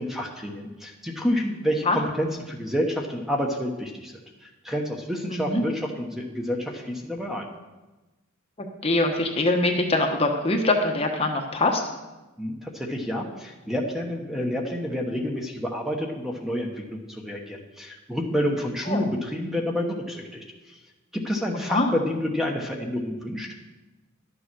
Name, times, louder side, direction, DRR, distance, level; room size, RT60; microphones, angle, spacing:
voice 1, 0.0-4.1 4.4-7.5 12.4-20.8 21.1-23.5, equal, ahead, 1 dB, 1.1 m, -29 dB
voice 2, 5.3-5.6 8.8-11.8 18.9-19.0 21.7-21.9, left 2 dB, 30° left, 3 dB, 1.0 m, -23 dB
11.5 x 6.9 x 6.2 m, 1.1 s
head